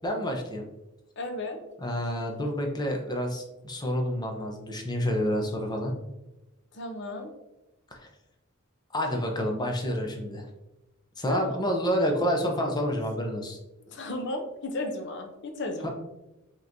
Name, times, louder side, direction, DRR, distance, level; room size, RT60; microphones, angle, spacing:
voice 1, 0.0-0.6 1.8-5.9 7.9-8.1 8.9-10.5 11.2-13.6 15.8-15.9, equal, 20° left, 2 dB, 0.7 m, -29 dB
voice 2, 1.2-1.6 6.7-7.3 11.3-11.6 13.9-15.9, left 2 dB, 60° left, 5 dB, 0.7 m, -34 dB
5.5 x 3.0 x 2.6 m, 0.97 s
head